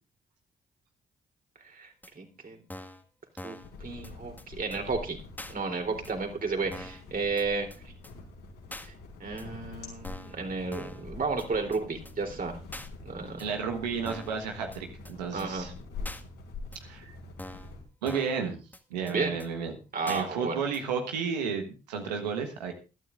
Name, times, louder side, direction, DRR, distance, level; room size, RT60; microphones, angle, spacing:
voice 1, 1.6-2.6 3.4-5.2 5.5-7.9 8.8-8.9 9.2-12.6 13.0-13.4 15.3-15.7 19.1-19.4 19.9-20.6, right 4 dB, 45° right, 4 dB, 3.5 m, -33 dB
sound 1, 2.0-2.1 2.7-3.0 3.4-3.7 4.0-4.1 4.4-4.5 4.7-4.8 5.4-5.5 6.0-6.1 6.7-7.0 7.4-7.5 7.7-7.8 8.0-8.1 8.7-8.9 9.4-9.5 10.0-10.4 10.7-11.0 11.4-11.5 11.7-11.8 12.0-12.1 12.7-12.9 13.4-13.5 14.1-14.4 14.7-14.8 15.0-15.1 15.4-15.5 16.0-16.2 16.7-16.8 17.4-17.7 18.1-18.4 18.7-18.8 19.1-19.2 19.4-19.5 20.1-20.2 20.7-20.8, left 1 dB, 10° left, 1.8 m, -43 dB
sound 2, 3.6-17.8, left 3 dB, 75° left, 5.1 m, -45 dB
voice 2, 13.4-15.7 16.8-17.2 18.0-18.6 18.9-19.8 20.0-22.7, right 6 dB, 90° right, 4 dB, 1.4 m, -32 dB
21.5 x 12.5 x 2.5 m, 0.32 s
hypercardioid pair, 40°, 21 cm